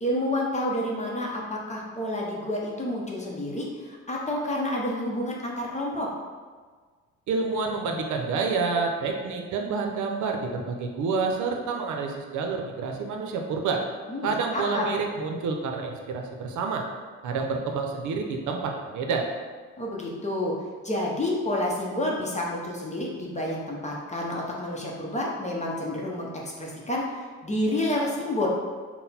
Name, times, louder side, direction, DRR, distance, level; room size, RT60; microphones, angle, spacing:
voice 1, 0.0-6.1 14.1-14.8 19.8-20.5 20.8-28.5, left 1 dB, 25° left, -3 dB, 0.7 m, -29 dB
voice 2, 7.3-13.8 14.2-16.8 17.2-19.3, right 4 dB, 75° right, 2 dB, 0.6 m, -28 dB
3.9 x 2.1 x 4.1 m, 1.5 s
cardioid pair, 90°, 30 cm